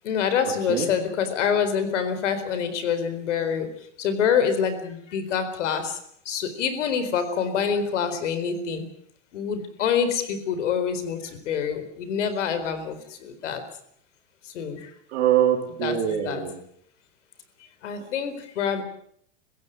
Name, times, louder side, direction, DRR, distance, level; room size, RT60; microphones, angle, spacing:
voice 1, 0.0-3.7 4.0-6.0 6.3-8.8 9.3-13.7 14.5-14.9 15.7-16.4 17.8-18.8, left 7 dB, 80° left, 11 dB, 4.3 m, -26 dB
voice 2, 15.1-16.6, right 10 dB, 55° right, -2 dB, 3.6 m, -23 dB
23.0 x 16.0 x 9.1 m, 0.67 s
supercardioid pair, 170°, 36 cm